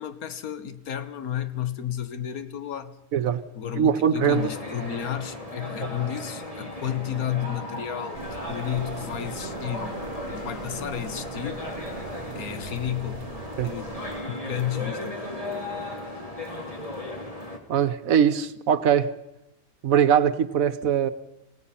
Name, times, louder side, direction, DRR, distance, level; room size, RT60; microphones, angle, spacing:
voice 1, 0.0-3.0 3.5-10.0 10.3-11.6 12.3-15.2, left 10 dB, 85° left, 1.6 m, -32 dB
voice 2, 3.8-4.5 13.6-13.7 17.7-19.1 19.8-21.1, right 8 dB, 75° right, 1.3 m, -21 dB
sound 1, 4.2-17.6, left 1 dB, 25° left, 2.7 m, -36 dB
sound 2, 8.1-14.2, right 5 dB, 55° right, 1.5 m, -42 dB
27.0 x 17.0 x 5.7 m
omnidirectional pair, 1.5 m